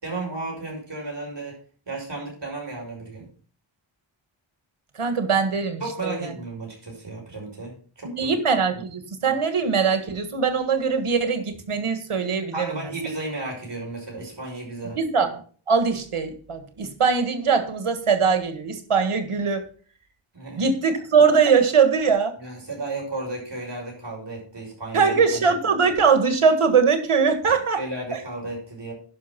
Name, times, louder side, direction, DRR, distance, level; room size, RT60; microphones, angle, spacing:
voice 1, 0.0-1.6 1.9-3.3 5.8-8.3 8.7-8.8 12.5-15.0 20.3-20.7 22.4-25.2 27.7-28.9, right 2 dB, 55° right, -1 dB, 6.1 m, -33 dB
voice 2, 5.0-6.3 8.0-12.8 14.9-15.3 15.7-19.6 20.6-22.3 24.9-27.8 28.1-28.2, right 5 dB, 85° right, 7 dB, 1.8 m, -21 dB
11.0 x 6.0 x 5.9 m, 0.43 s
wide cardioid pair, 55°, 50 cm